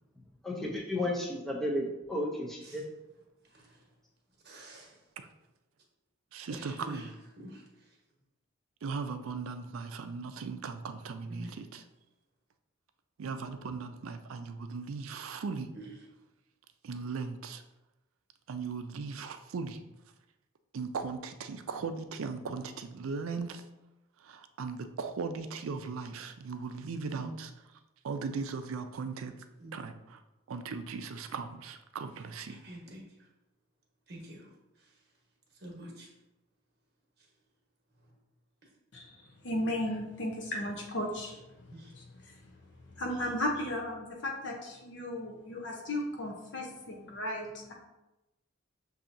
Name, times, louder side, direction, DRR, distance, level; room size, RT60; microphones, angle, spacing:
voice 1, 0.4-2.8, left 1 dB, ahead, -2 dB, 0.6 m, -33 dB
voice 2, 3.4-3.9 4.4-5.0 6.5-8.0 11.3-11.5 15.7-15.9 27.1-27.4 29.6-29.8 32.5-33.3 34.1-35.1 35.5-36.1 37.2-37.3 37.9-38.1 41.7-42.0, right 1 dB, 50° right, -1 dB, 1.1 m, -48 dB
voice 3, 6.3-7.1 8.8-11.8 13.2-15.7 16.8-17.6 18.5-19.8 20.7-23.6 24.2-27.5 28.0-29.3 29.7-30.2 30.5-32.6, right 4 dB, 80° right, 8 dB, 0.4 m, -38 dB
voice 4, 38.9-41.4 42.2-42.4 43.0-47.7, left 1 dB, 55° left, 0 dB, 0.6 m, -35 dB
7.0 x 2.7 x 2.6 m, 0.98 s
head